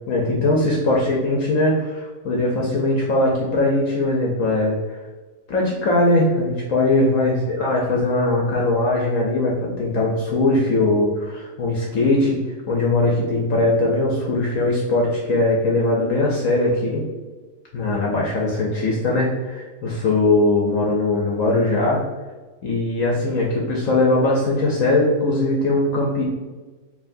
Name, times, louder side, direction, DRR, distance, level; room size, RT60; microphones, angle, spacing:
voice 1, 0.1-5.0 5.5-12.4 12.7-17.0 17.7-22.0 22.6-26.2, left 2 dB, 65° left, -2 dB, 0.9 m, -20 dB
4.7 x 2.9 x 2.5 m, 1.3 s
omnidirectional pair, 1.7 m